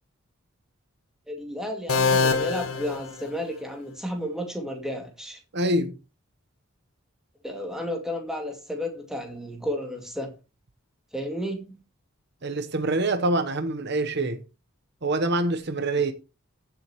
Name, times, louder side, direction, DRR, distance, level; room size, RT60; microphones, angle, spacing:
voice 1, 1.3-5.4 7.4-10.4 11.1-11.8, equal, ahead, 2.2 m, -32 dB
sound 1, 1.9-3.8, left 4 dB, 90° left, 1.6 m, -25 dB
voice 2, 5.5-5.9 12.4-14.4 15.0-16.1, right 2 dB, 50° right, 0.9 m, -25 dB
15.5 x 7.3 x 3.0 m
head